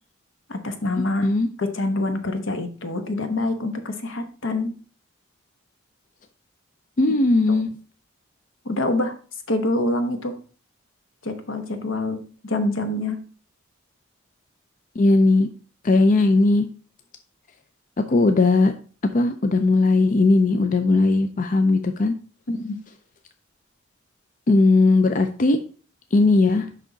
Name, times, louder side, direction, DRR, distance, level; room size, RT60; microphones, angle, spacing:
voice 1, 0.5-1.3 1.6-4.8 7.5-7.6 8.6-9.2 9.5-10.4 11.2-13.3 22.5-22.8, left 2 dB, 75° left, 7 dB, 1.0 m, -26 dB
voice 2, 7.0-7.7 15.0-15.5 15.8-16.7 18.0-18.7 19.1-22.1 24.5-25.6 26.1-26.7, left 3 dB, 40° left, 8 dB, 0.4 m, -18 dB
6.2 x 5.5 x 3.9 m, 0.40 s
head